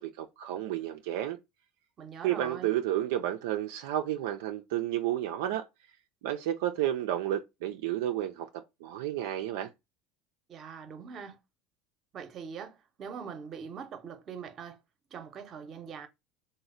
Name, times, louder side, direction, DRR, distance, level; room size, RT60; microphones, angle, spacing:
voice 1, 0.0-1.4 2.2-5.6 6.2-8.5 8.8-9.7, right 12 dB, 80° right, 0.3 m, -31 dB
voice 2, 2.0-2.7 10.5-11.4 12.1-14.8 15.1-16.1, right 6 dB, 45° right, 0.7 m, -42 dB
3.1 x 2.0 x 3.8 m
supercardioid pair, 95°, 0 cm